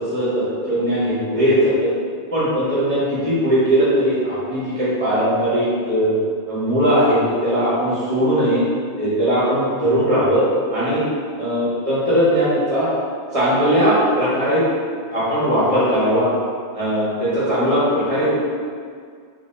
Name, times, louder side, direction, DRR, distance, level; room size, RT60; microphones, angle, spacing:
voice 1, 0.0-1.9 2.3-6.1 6.5-8.6 9.0-10.4 10.7-11.1 11.4-12.9 13.3-14.6 15.1-16.3 16.7-18.4, equal, 30° right, -11 dB, 1.4 m, -19 dB
3.2 x 2.9 x 3.2 m, 2.1 s
omnidirectional pair, 1.2 m